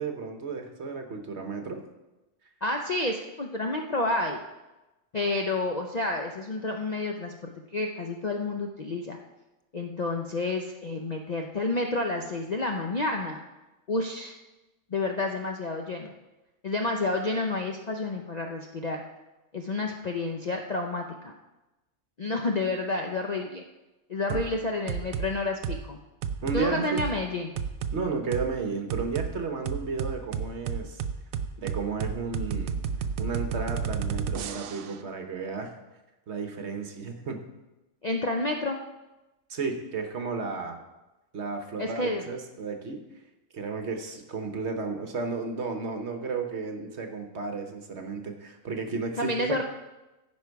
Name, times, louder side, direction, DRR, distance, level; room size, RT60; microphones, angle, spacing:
voice 1, 0.0-1.8 24.3-24.4 26.4-27.0 27.9-31.0 31.6-32.8 33.2-35.7 36.3-37.4 39.5-40.8 41.3-43.0 43.5-49.3, right 4 dB, 55° right, 5 dB, 1.2 m, -33 dB
voice 2, 2.6-4.4 5.1-9.2 9.7-13.4 13.9-14.3 14.9-16.1 16.6-19.0 19.5-21.3 22.2-23.6 24.1-26.0 26.5-27.5 38.0-38.8 41.8-42.3 49.2-49.6, left 2 dB, 45° left, 2 dB, 0.5 m, -30 dB
sound 1, 24.3-24.5 24.9-25.3 25.6-25.8 26.2-26.6 27.0-27.1 27.6-28.0 28.3-28.5 28.9-29.3 29.7-35.0, right 7 dB, 75° right, 1.0 m, -31 dB
15.0 x 5.3 x 4.6 m, 1.0 s
omnidirectional pair, 1.5 m